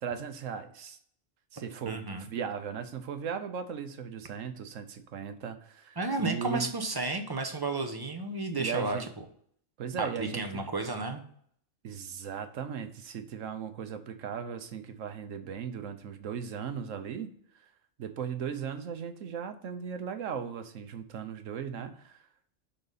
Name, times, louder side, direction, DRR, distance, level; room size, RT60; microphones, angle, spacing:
voice 1, 0.0-1.0 1.5-6.7 8.6-9.1 9.8-10.6 11.8-17.3 17.5-17.7 18.0-22.2, right 7 dB, 85° right, 9 dB, 1.2 m, -37 dB
voice 2, 1.9-2.3 6.0-9.0 10.0-11.2, right 2 dB, 20° right, 5 dB, 0.8 m, -32 dB
12.0 x 4.0 x 4.0 m, 0.62 s
omnidirectional pair, 1.3 m